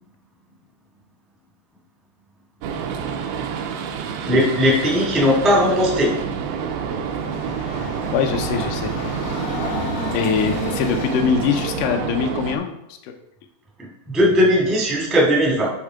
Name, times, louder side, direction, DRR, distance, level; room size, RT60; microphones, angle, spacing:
sound 1, 2.6-12.6, right 7 dB, 85° right, 2.6 m, -28 dB
voice 1, 4.2-6.1 14.1-15.7, equal, ahead, -4 dB, 0.4 m, -18 dB
Train, 6.7-11.6, left 2 dB, 70° left, 1.4 m, -31 dB
voice 2, 8.1-9.2 10.1-12.7 13.0-13.1, left 6 dB, 85° left, 4 dB, 1.8 m, -23 dB
9.3 x 3.7 x 4.9 m, 0.83 s
omnidirectional pair, 4.5 m